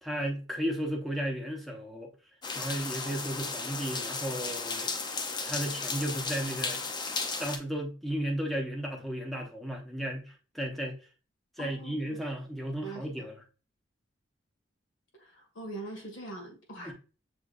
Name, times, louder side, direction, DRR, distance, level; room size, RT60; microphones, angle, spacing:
voice 1, 0.0-2.1 2.5-4.9 5.4-6.8 7.4-10.9 11.6-13.4 16.8-16.9, equal, ahead, 0.9 m, -34 dB
sound 1, 2.4-7.6, left 4 dB, 25° left, 0.5 m, -34 dB
voice 2, 11.6-12.2 12.8-13.3 15.2-16.9, right 2 dB, 85° left, 1.8 m, -42 dB
6.4 x 3.2 x 2.4 m
head